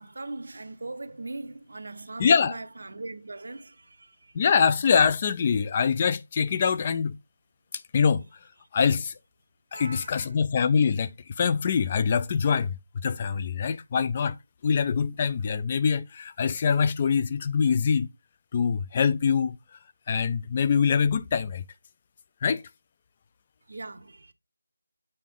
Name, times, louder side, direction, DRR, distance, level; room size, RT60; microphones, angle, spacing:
voice 1, 0.0-4.4 9.7-10.3 23.7-24.3, right 2 dB, 55° right, 0.7 m, -40 dB
voice 2, 2.2-2.6 4.3-7.2 7.9-8.2 8.7-9.1 9.7-11.1 11.4-12.8 13.0-14.4 14.6-18.1 18.5-19.6 20.1-21.6 22.4-22.6, left 6 dB, 25° left, 0.3 m, -24 dB
7.7 x 3.7 x 3.6 m
figure-of-eight pair, 160°, 0 cm